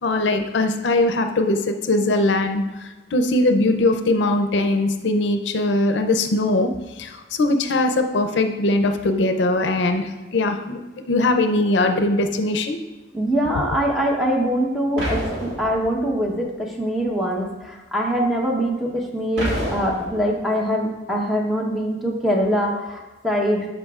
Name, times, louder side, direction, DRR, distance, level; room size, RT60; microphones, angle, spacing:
voice 1, 0.0-6.7 7.0-10.8 11.1-12.8, left 2 dB, 75° left, 7 dB, 0.5 m, -21 dB
voice 2, 13.1-23.7, equal, ahead, -2 dB, 1.0 m, -23 dB
sound 1, 15.0-16.2 19.4-20.3, equal, 85° right, 2.0 m, -28 dB
11.5 x 5.1 x 2.4 m, 1.1 s
head